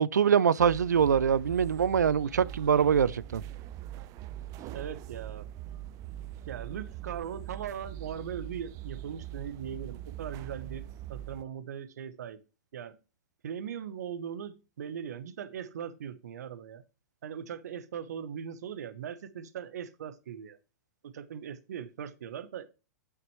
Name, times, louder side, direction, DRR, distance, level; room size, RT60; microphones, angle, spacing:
voice 1, 0.0-3.4, right 7 dB, 90° right, 0.4 m, -24 dB
sound 1, 0.6-11.4, right 12 dB, 35° right, 0.5 m, -42 dB
voice 2, 4.7-5.4 6.5-10.8 11.1-12.4 12.7-13.0 13.4-16.8 17.2-20.6 21.0-22.7, right 8 dB, 75° right, 0.9 m, -39 dB
9.5 x 5.9 x 3.1 m
hypercardioid pair, 115°, 9 cm